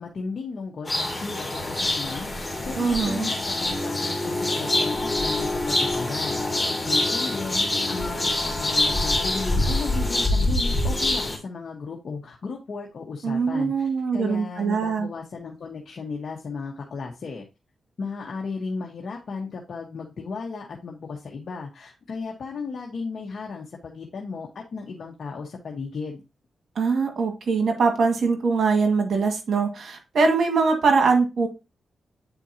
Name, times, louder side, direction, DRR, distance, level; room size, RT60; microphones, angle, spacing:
voice 1, 0.0-6.4 6.9-17.4 18.0-26.2, left 4 dB, 60° left, 0 dB, 1.4 m, -35 dB
sound 1, 0.9-11.4, left 2 dB, 20° left, 2.5 m, -25 dB
voice 2, 2.8-3.3 13.2-15.1 26.8-31.5, right 4 dB, 70° right, 3 dB, 2.0 m, -22 dB
9.1 x 4.4 x 2.9 m, 0.26 s
cardioid pair, 65°, 0 cm